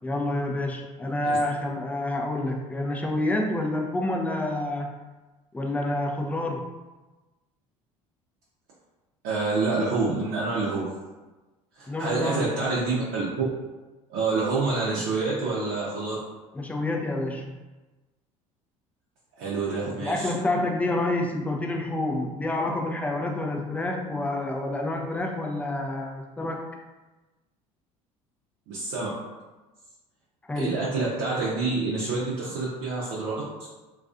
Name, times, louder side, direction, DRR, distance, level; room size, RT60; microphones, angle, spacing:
voice 1, 0.0-5.0 5.5-6.7 11.9-12.7 16.5-17.6 20.0-26.7 30.5-30.8, left 2 dB, 10° left, 1 dB, 0.4 m, -28 dB
voice 2, 9.2-10.9 11.8-13.4 14.1-16.2 19.4-20.3 28.7-29.1 30.6-33.3 33.6-33.7, right 3 dB, 65° right, -7 dB, 0.6 m, -27 dB
2.4 x 2.3 x 2.4 m, 1.2 s
hypercardioid pair, 70°, 17 cm